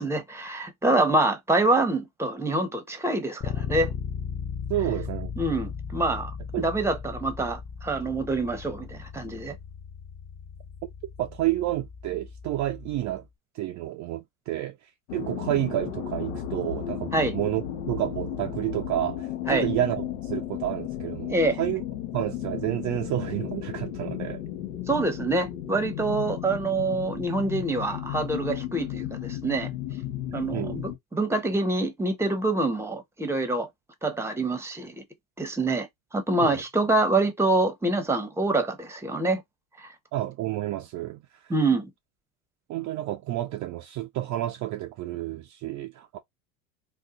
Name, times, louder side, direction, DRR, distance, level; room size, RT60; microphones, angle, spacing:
voice 1, 0.0-3.9 5.4-9.5 17.1-17.4 19.5-19.7 21.3-21.6 24.9-29.7 30.3-33.7 34.0-35.0 35.4-35.9 36.1-39.4 39.8-39.9 41.5-41.9, right 2 dB, 5° right, 0.8 m, -26 dB
Bass guitar, 3.4-13.2, left 6 dB, 15° left, 0.4 m, -37 dB
voice 2, 4.7-5.3 6.5-6.7 10.8-10.9 11.2-13.2 13.5-21.8 22.1-24.4 30.5-30.8 36.4-36.6 40.1-41.5 42.7-46.2, right 14 dB, 40° right, 0.4 m, -30 dB
sound 1, 15.1-31.0, left 11 dB, 75° left, 1.0 m, -34 dB
2.7 x 2.2 x 3.7 m
hypercardioid pair, 90°, 43 cm